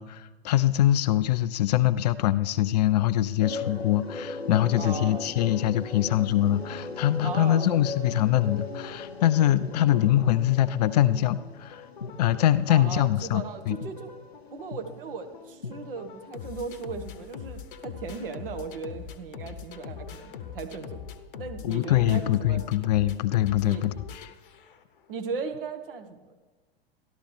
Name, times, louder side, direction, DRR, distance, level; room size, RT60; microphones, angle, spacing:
voice 1, 0.0-11.8 12.2-13.8 21.6-24.2, left 13 dB, 45° left, 15 dB, 0.4 m, -23 dB
sound 1, 3.4-14.2 14.7-14.8 15.3-15.7, left 3 dB, 85° left, 0.8 m, -38 dB
voice 2, 4.8-5.3 7.2-7.8 12.7-14.1 14.5-21.1 21.4-22.6 23.6-23.9 25.1-26.4, right 5 dB, 60° right, 7 dB, 1.2 m, -37 dB
sound 2, 8.3-25.0, left 7 dB, 60° left, 0.8 m, -44 dB
13.0 x 12.0 x 3.3 m, 1.3 s
figure-of-eight pair, 90°, 31 cm